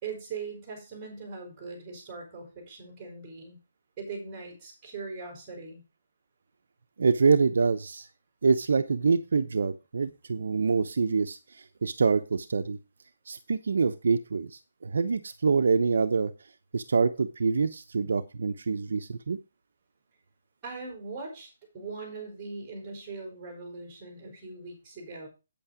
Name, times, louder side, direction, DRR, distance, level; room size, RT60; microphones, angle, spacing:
voice 1, 0.0-3.6 4.0-5.8 20.6-25.3, right 4 dB, 10° right, 2 dB, 5.0 m, -40 dB
voice 2, 7.0-8.1 8.4-12.8 13.3-16.3 16.7-19.4, right 4 dB, 65° right, 8 dB, 0.9 m, -26 dB
8.8 x 8.6 x 5.0 m, 0.28 s
hypercardioid pair, 180°, 0 cm